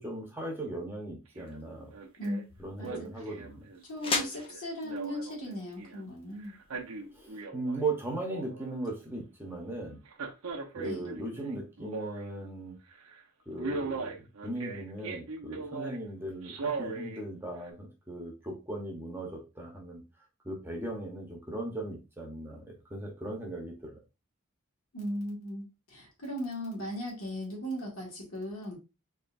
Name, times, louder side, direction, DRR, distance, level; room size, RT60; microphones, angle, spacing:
voice 1, 0.0-1.9 2.6-3.6 7.1-10.0 10.8-12.8 13.5-20.0 20.4-24.0, right 2 dB, 10° right, 0 dB, 1.0 m, -38 dB
sound 1, 1.4-7.3, left 3 dB, 25° left, 0.7 m, -40 dB
Male speech man speaking, 1.4-1.6 1.9-2.4 2.8-6.0 6.5-7.8 8.1-8.9 10.1-12.5 12.9-13.1 13.6-16.0 16.4-17.2 17.7-17.8, right 4 dB, 90° right, 0.8 m, -39 dB
voice 2, 2.8-3.1 3.9-6.5 10.8-11.0 24.9-28.8, equal, 75° left, -3 dB, 2.1 m, -37 dB
4.3 x 3.1 x 2.5 m, 0.28 s
head